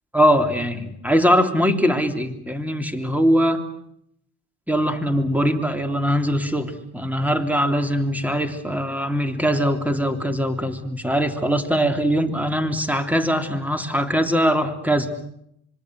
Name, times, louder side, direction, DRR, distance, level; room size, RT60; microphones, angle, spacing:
voice 1, 0.1-3.6 4.7-15.2, equal, 5° right, 7 dB, 3.3 m, -21 dB
26.0 x 23.0 x 7.9 m, 0.75 s
supercardioid pair, 70°, 44 cm